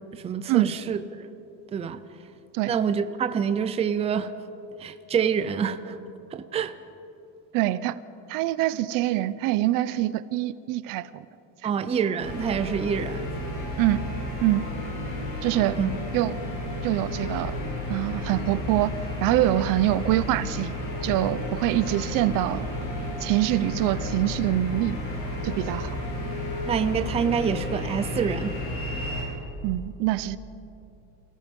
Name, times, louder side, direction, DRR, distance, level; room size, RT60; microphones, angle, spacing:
voice 1, 0.1-1.0 1.7-2.0 2.6-4.3 4.8-6.0 6.3-6.7 11.6-13.2 15.8-15.9 26.7-28.5, right 7 dB, 15° right, 10 dB, 0.6 m, -26 dB
voice 2, 7.5-8.0 8.3-11.2 11.6-11.7 13.8-14.1 14.4-14.7 15.4-15.8 16.1-16.3 16.8-17.6 17.9-18.9 19.2-20.7 21.0-22.7 23.2-25.0 25.4-26.0 29.6-30.4, right 15 dB, 65° right, 16 dB, 0.7 m, -24 dB
sound 1, 12.2-29.2, left 1 dB, 60° left, 7.0 m, -32 dB
29.0 x 18.0 x 5.4 m, 2.8 s
cardioid pair, 175°, 35 cm